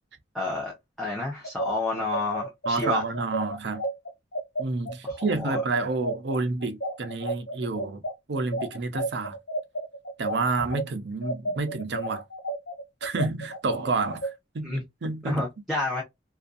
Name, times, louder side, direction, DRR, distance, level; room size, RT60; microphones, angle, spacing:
voice 1, 0.3-3.0 5.0-5.6 14.6-14.8 15.2-16.0, left 2 dB, ahead, 0.7 m, -30 dB
sound 1, 1.4-10.8 11.2-14.3, right 1 dB, 70° left, 1.3 m, -32 dB
voice 2, 2.7-3.8 4.6-8.0 8.3-9.4 10.2-12.2 13.0-14.7 15.0-15.4, right 3 dB, 65° right, 0.5 m, -29 dB
2.5 x 2.4 x 2.4 m
head